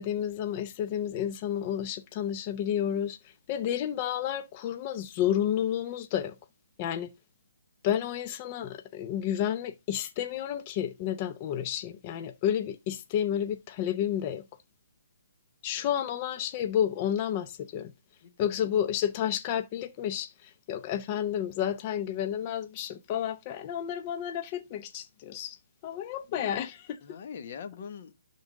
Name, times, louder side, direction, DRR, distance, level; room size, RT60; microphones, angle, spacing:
voice 1, 0.0-6.4 6.8-7.1 7.8-14.4 15.6-17.9 18.4-25.6 25.8-26.9, left 10 dB, 30° left, 0.7 m, -31 dB
voice 2, 18.2-18.8 26.3-26.5 27.0-28.1, left 6 dB, 45° left, 1.3 m, -43 dB
11.5 x 3.9 x 3.6 m
hypercardioid pair, 150°, 0 cm